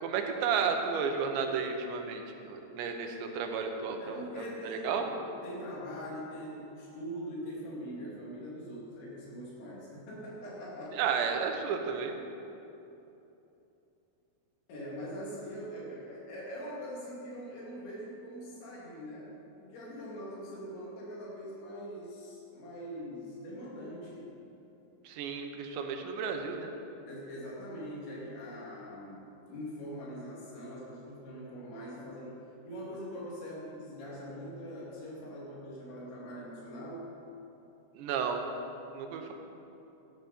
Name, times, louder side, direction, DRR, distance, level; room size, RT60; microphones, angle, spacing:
voice 1, 0.0-5.1 10.9-12.1 25.0-26.7 37.9-38.4 38.9-39.3, right 6 dB, 90° right, 4 dB, 3.3 m, -33 dB
voice 2, 4.0-5.1 5.4-11.0 14.7-24.3 27.1-37.1, equal, 90° left, -5 dB, 5.0 m, -42 dB
14.0 x 12.0 x 4.3 m, 2.9 s
omnidirectional pair, 5.0 m